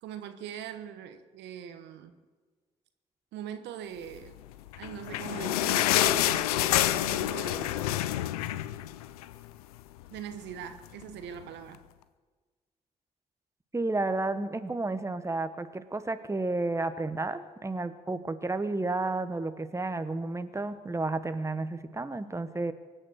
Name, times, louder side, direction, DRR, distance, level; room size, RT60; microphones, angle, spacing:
voice 1, 0.0-2.1 3.3-4.4 4.8-7.8 10.1-11.8, right 9 dB, 70° right, 9 dB, 1.0 m, -41 dB
sound 1, 4.7-9.4 9.8-9.9 10.2-10.3 11.0-11.1, left 14 dB, 85° left, 0.5 m, -27 dB
voice 2, 13.7-22.7, right 2 dB, 15° right, 11 dB, 1.2 m, -31 dB
24.0 x 9.1 x 6.4 m, 1.4 s
hypercardioid pair, 40°, 19 cm